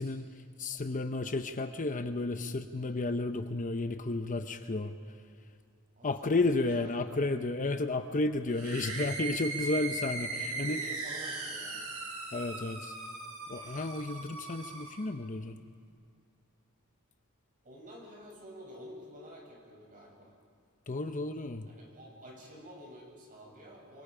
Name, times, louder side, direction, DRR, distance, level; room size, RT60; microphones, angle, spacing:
voice 1, 0.0-4.9 6.0-10.8 12.3-12.9 13.5-15.6 20.9-21.7, left 2 dB, 35° left, 8 dB, 0.8 m, -32 dB
voice 2, 5.9-7.2 10.3-11.8 17.6-20.3 21.6-24.0, equal, 40° right, -2 dB, 8.0 m, -50 dB
sound 1, 8.5-15.1, right 3 dB, 80° right, 5.5 m, -39 dB
27.5 x 25.0 x 5.0 m, 2.2 s
head